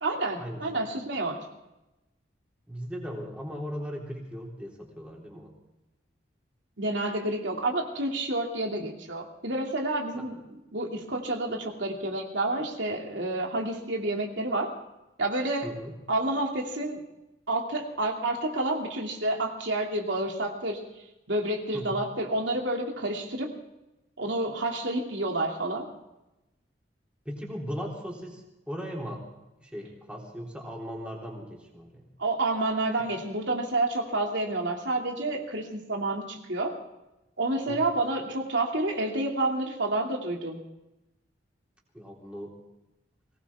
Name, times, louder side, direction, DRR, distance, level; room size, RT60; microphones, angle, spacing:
voice 1, 0.0-1.4 6.8-10.4 10.7-14.7 15.2-15.7 16.1-17.0 17.5-20.8 21.3-23.5 24.2-25.8 32.2-36.7 37.4-40.6, right 2 dB, 85° right, 1 dB, 2.8 m, -29 dB
voice 2, 2.7-5.5 10.1-10.2 15.6-15.9 21.7-22.0 27.3-29.2 29.6-32.1 37.7-37.8 41.9-42.6, equal, 5° right, -2 dB, 3.6 m, -38 dB
21.5 x 18.5 x 3.6 m, 0.95 s
head